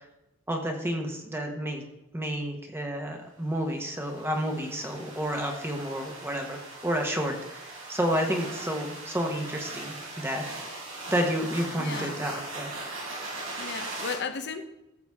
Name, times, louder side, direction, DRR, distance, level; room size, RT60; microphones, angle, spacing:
voice 1, 0.5-1.8 2.1-10.4 11.1-12.7, equal, 10° right, 2 dB, 1.1 m, -30 dB
sound 1, 3.7-14.1, right 2 dB, 80° right, 3.6 m, -40 dB
voice 2, 11.8-12.2 13.6-14.6, left 5 dB, 55° left, 9 dB, 0.9 m, -35 dB
14.0 x 6.9 x 3.6 m, 0.94 s
head